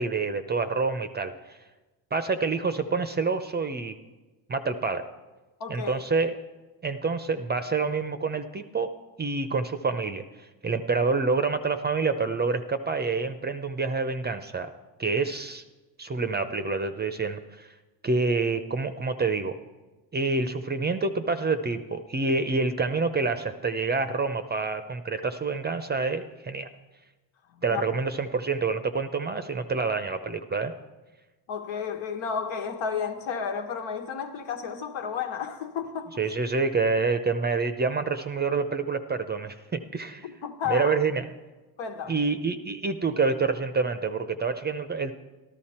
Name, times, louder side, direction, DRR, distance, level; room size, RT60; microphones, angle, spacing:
voice 1, 0.0-1.3 2.1-3.9 4.5-5.1 5.7-6.4 6.8-8.9 9.2-10.2 10.6-14.7 15.0-15.6 16.0-17.7 18.0-19.5 20.1-26.7 27.6-30.7 36.2-40.3 40.7-41.3 42.1-45.1, right 4 dB, 20° right, 0.6 m, -27 dB
voice 2, 5.6-6.0 27.5-27.8 31.5-36.1 40.2-41.0 41.8-42.1, left 6 dB, 65° left, 1.6 m, -32 dB
13.5 x 12.0 x 4.3 m
supercardioid pair, 95°, 50 cm